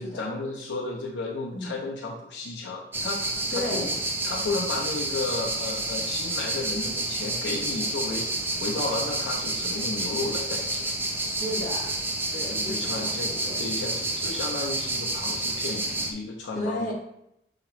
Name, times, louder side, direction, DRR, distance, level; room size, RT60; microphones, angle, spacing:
voice 1, 0.0-10.9 12.5-16.9, left 3 dB, 90° left, -2 dB, 0.6 m, -33 dB
sound 1, 2.9-16.1, right 2 dB, 10° right, 0.4 m, -29 dB
voice 2, 3.5-3.9 11.2-11.9 12.3-13.5 16.5-16.9, left 1 dB, 45° left, -4 dB, 1.6 m, -33 dB
5.8 x 2.8 x 3.0 m, 0.79 s
head